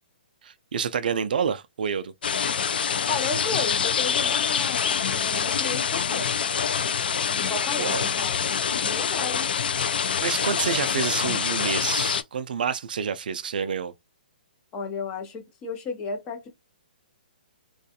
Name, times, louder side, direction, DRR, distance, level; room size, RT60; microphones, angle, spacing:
voice 1, 0.4-2.1 7.8-8.0 10.0-13.9, right 6 dB, 65° right, 0.3 m, -28 dB
sound 1, 2.2-12.2, left 7 dB, 75° left, 0.3 m, -25 dB
voice 2, 3.1-6.4 7.3-9.5 14.7-16.5, left 5 dB, 20° left, 0.6 m, -34 dB
2.4 x 2.3 x 2.7 m
hypercardioid pair, 165°, 5 cm